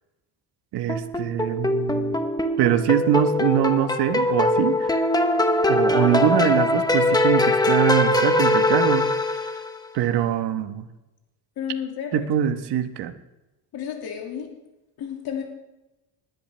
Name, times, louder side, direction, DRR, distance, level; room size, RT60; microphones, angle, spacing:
voice 1, 0.7-2.2 2.6-5.0 5.7-9.1 9.9-10.8 12.1-13.1, right 10 dB, 65° right, 9 dB, 1.2 m, -23 dB
sound 1, 0.9-9.8, left 2 dB, 10° left, 0.9 m, -22 dB
voice 2, 11.6-12.3 13.7-14.5 15.0-15.4, left 8 dB, 60° left, 1 dB, 2.3 m, -31 dB
20.0 x 10.5 x 3.3 m, 1.0 s
cardioid pair, 130°, 43 cm